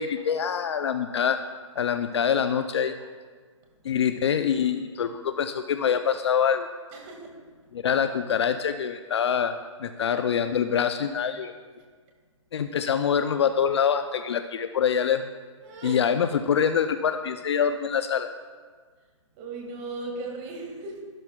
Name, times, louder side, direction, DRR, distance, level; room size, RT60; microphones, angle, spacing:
voice 1, 0.0-1.4 1.8-2.9 3.8-6.7 7.7-11.5 12.5-15.3 15.8-18.3, left 7 dB, 60° left, 9 dB, 0.5 m, -25 dB
voice 2, 6.9-7.3 15.6-16.0 19.4-21.0, right 3 dB, 25° right, 1 dB, 2.0 m, -37 dB
12.5 x 12.0 x 2.3 m, 1.5 s
hypercardioid pair, 155°, 16 cm